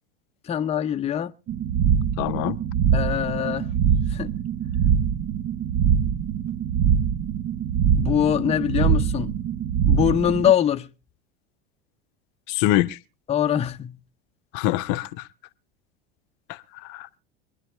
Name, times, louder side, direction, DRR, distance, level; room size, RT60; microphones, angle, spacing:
voice 1, 0.5-1.3 2.9-3.7 4.1-4.3 8.0-9.3 9.9-10.9 13.3-14.0, left 10 dB, 20° left, 0.7 m, -23 dB
sound 1, 1.5-10.5, right 8 dB, 45° right, 0.9 m, -23 dB
voice 2, 2.2-2.6 12.5-13.0 14.5-15.2 16.5-17.1, left 15 dB, 55° left, 0.7 m, -25 dB
25.5 x 10.5 x 3.2 m
hypercardioid pair, 85°, 31 cm